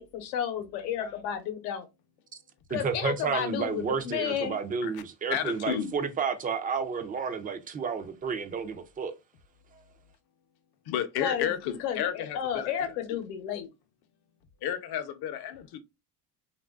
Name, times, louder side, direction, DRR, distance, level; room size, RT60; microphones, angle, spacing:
voice 1, 0.0-1.9 2.7-4.6 11.2-11.5 11.8-13.7, left 9 dB, 85° left, 0.9 m, -32 dB
voice 2, 2.7-9.1, right 6 dB, 20° right, 0.3 m, -31 dB
voice 3, 5.3-5.9 10.9-12.9 14.6-15.8, left 9 dB, 50° left, 0.6 m, -32 dB
3.1 x 2.5 x 2.3 m
supercardioid pair, 80°, 50 cm